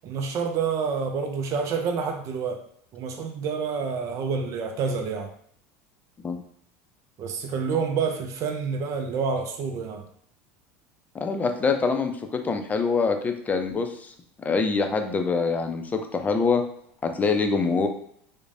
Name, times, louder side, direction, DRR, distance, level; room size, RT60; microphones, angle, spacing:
voice 1, 0.0-2.6 2.9-5.3 7.2-10.0, right 5 dB, 45° right, 4 dB, 0.4 m, -28 dB
voice 2, 11.1-16.6 17.0-17.9, left 4 dB, 20° left, 5 dB, 0.4 m, -25 dB
3.0 x 2.1 x 2.5 m, 0.67 s
hypercardioid pair, 85°, 7 cm